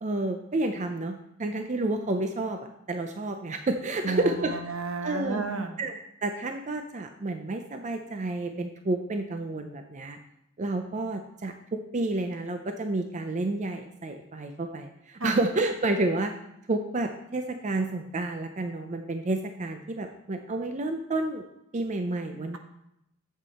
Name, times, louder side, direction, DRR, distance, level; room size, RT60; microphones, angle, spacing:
voice 1, 0.0-2.6 2.9-4.5 5.0-5.4 5.8-10.2 10.6-16.3 16.7-21.4 21.7-22.6, right 2 dB, 35° right, 6 dB, 0.5 m, -30 dB
voice 2, 4.0-5.7 15.2-15.3, right 3 dB, 75° right, 5 dB, 1.1 m, -31 dB
8.3 x 7.4 x 4.2 m, 0.83 s
head